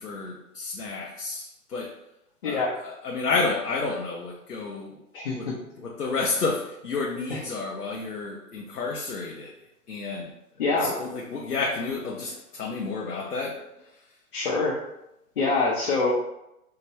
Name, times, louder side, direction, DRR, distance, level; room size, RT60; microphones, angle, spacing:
voice 1, 0.0-1.9 2.4-5.0 5.3-5.5 5.8-9.5 9.9-10.3 10.8-13.6, left 3 dB, 90° left, -1 dB, 0.6 m, -30 dB
voice 2, 2.4-2.8 5.1-5.6 7.3-7.4 10.6-10.9 14.3-14.8 15.4-16.1, left 3 dB, 40° left, -5 dB, 0.6 m, -25 dB
4.7 x 2.1 x 2.9 m, 0.87 s
figure-of-eight pair, 125°, 45 cm